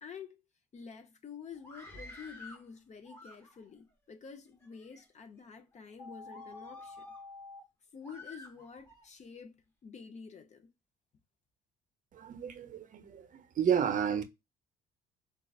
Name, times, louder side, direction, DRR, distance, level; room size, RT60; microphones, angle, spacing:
voice 1, 0.0-0.4 0.7-7.0 7.9-10.7, left 6 dB, 40° left, 0.7 m, -49 dB
Screaming, 1.6-2.7 3.0-3.8 4.5-5.0 5.6-5.7 6.3-7.2 8.0-9.1, left 2 dB, 15° left, 1.1 m, -51 dB
sound 1, 6.0-7.6, left 3 dB, 80° left, 1.2 m, -48 dB
voice 2, 12.1-14.2, right 8 dB, 45° right, 0.6 m, -31 dB
3.8 x 2.4 x 2.3 m
supercardioid pair, 90°, 19 cm